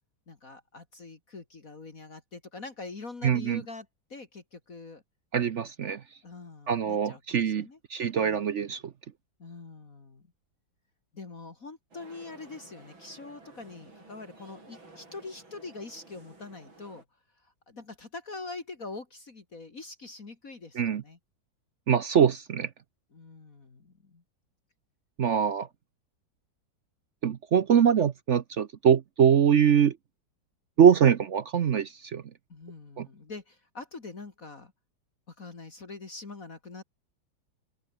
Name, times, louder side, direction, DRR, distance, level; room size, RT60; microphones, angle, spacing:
voice 1, 0.3-5.0 6.2-7.8 8.2-8.6 9.4-10.3 11.1-17.0 17.4-21.2 23.1-24.2 32.5-34.7 35.3-36.8, left 3 dB, 45° left, 2.9 m, -44 dB
voice 2, 3.2-3.6 5.3-6.0 6.7-8.8 20.8-21.0 21.9-22.7 25.2-25.7 27.2-29.9 30.8-32.2 33.0-33.1, right 8 dB, 55° right, 0.8 m, -23 dB
sound 1, 11.9-17.0, right 2 dB, 80° right, 7.5 m, -53 dB
open air
omnidirectional pair, 2.1 m